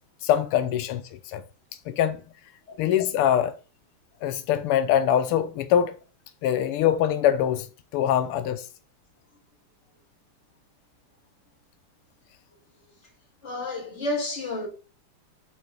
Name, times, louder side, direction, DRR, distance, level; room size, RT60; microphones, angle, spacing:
voice 1, 0.2-1.4 1.9-2.3 2.8-3.5 4.2-5.9 6.4-7.7 7.9-8.7, left 10 dB, 85° left, 1.6 m, -23 dB
voice 2, 13.4-14.7, left 2 dB, 30° left, 2.8 m, -30 dB
8.4 x 3.8 x 5.2 m
omnidirectional pair, 2.4 m